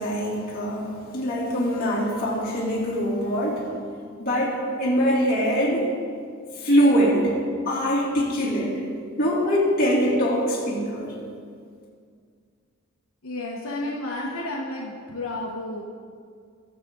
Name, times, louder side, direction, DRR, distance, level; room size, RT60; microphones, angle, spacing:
voice 1, 0.0-3.7 4.2-5.9 6.5-7.3 7.6-8.8 9.2-11.2, equal, 45° left, -5 dB, 2.8 m, -23 dB
voice 2, 13.2-15.8, left 2 dB, 75° left, -3 dB, 1.2 m, -31 dB
20.0 x 7.4 x 3.8 m, 2.1 s
head